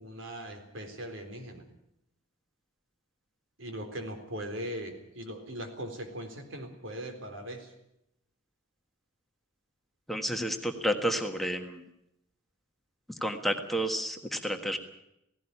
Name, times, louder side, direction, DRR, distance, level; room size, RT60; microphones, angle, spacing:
voice 1, 0.0-1.7 3.6-7.7, equal, 75° right, 5 dB, 4.0 m, -40 dB
voice 2, 10.1-11.8 13.2-14.8, equal, ahead, 4 dB, 1.6 m, -30 dB
17.0 x 17.0 x 9.9 m, 0.82 s
head